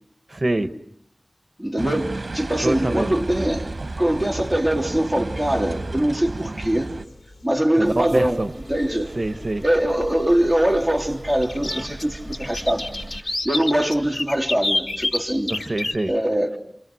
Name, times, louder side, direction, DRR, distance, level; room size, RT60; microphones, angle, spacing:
voice 1, 0.3-0.8 2.6-3.1 7.8-8.5 9.2-9.6 11.6-11.8 15.5-16.1, right 2 dB, 45° right, 10 dB, 1.3 m, -25 dB
voice 2, 1.6-3.7 4.0-6.9 7.4-8.4 8.7-9.1 9.6-12.9 13.4-15.5 16.1-16.5, right 1 dB, 5° left, 1 dB, 3.5 m, -22 dB
sound 1, 1.8-7.0, right 2 dB, 60° right, 1.0 m, -32 dB
sound 2, 6.6-6.9 8.5-8.6 9.0-9.1 11.4-15.9, left 2 dB, 75° left, 4.8 m, -27 dB
sound 3, 7.8-13.2, right 2 dB, 25° right, 3.1 m, -39 dB
29.5 x 28.0 x 6.3 m, 0.72 s
wide cardioid pair, 50°, 0 cm